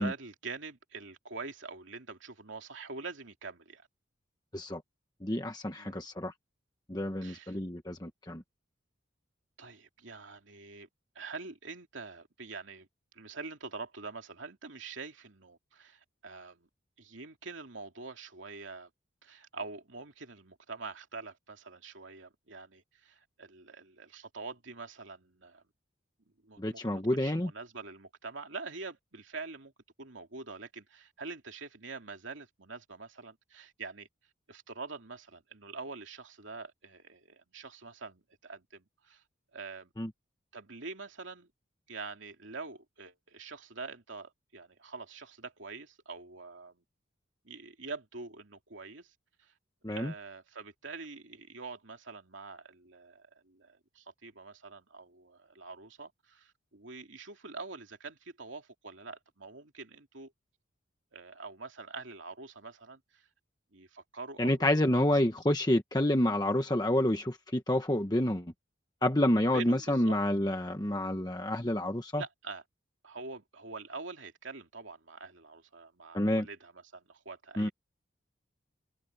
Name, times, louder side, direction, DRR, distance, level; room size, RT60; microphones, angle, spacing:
voice 1, 0.0-3.9 5.8-6.1 7.2-7.6 9.6-10.9 11.1-12.9 13.1-16.7 17.0-18.9 19.2-25.6 26.4-29.7 30.0-34.1 34.5-39.2 39.5-39.9 40.5-41.5 41.9-46.8 47.4-49.1 49.4-49.5 49.9-60.3 61.1-63.3 63.7-65.1 69.5-70.2 72.2-72.6 73.0-77.7, right 4 dB, 70° right, 2.7 m, -45 dB
voice 2, 5.2-6.3 6.9-8.4 26.6-27.5 40.0-40.1 49.8-50.1 64.4-68.5 69.0-72.2 76.1-76.5 77.6-77.7, left 1 dB, 20° left, 1.1 m, -28 dB
head